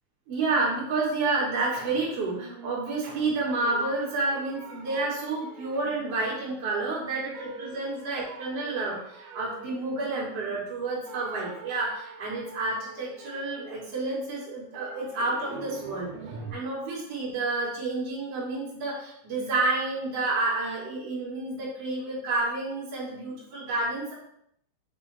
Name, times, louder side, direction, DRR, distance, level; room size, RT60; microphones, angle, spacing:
voice 1, 0.3-16.1 16.5-24.1, right 3 dB, 65° right, -5 dB, 1.5 m, -30 dB
sound 1, 2.2-3.3 3.6-6.9 7.3-10.8 11.1-16.5, right 4 dB, 90° right, 1.9 m, -45 dB
7.4 x 3.2 x 4.1 m, 0.72 s
omnidirectional pair, 5.5 m